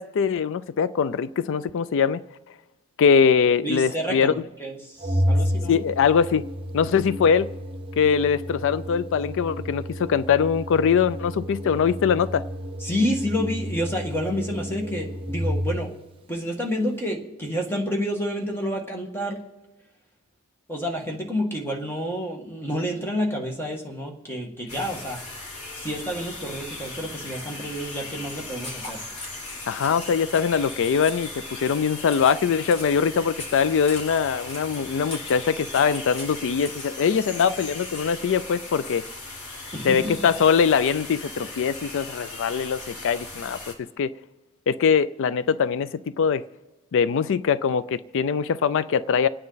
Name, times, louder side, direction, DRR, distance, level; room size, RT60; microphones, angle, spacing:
voice 1, 0.0-2.2 3.0-4.3 5.7-6.5 6.7-7.5 8.0-12.5 29.7-39.0 39.8-43.6 44.0-44.1 44.7-46.4 46.9-49.3, left 6 dB, 60° left, 0.4 m, -22 dB
voice 2, 3.6-5.8 12.8-15.9 16.3-19.4 20.7-25.2 25.8-29.0 39.7-40.1, equal, 10° left, 1.7 m, -29 dB
Organ, 5.0-16.0, equal, 25° right, 1.2 m, -30 dB
sound 1, 24.7-43.7, left 2 dB, 90° left, 2.4 m, -38 dB
sound 2, 28.3-38.3, left 1 dB, 30° left, 2.7 m, -42 dB
27.5 x 9.5 x 4.0 m
head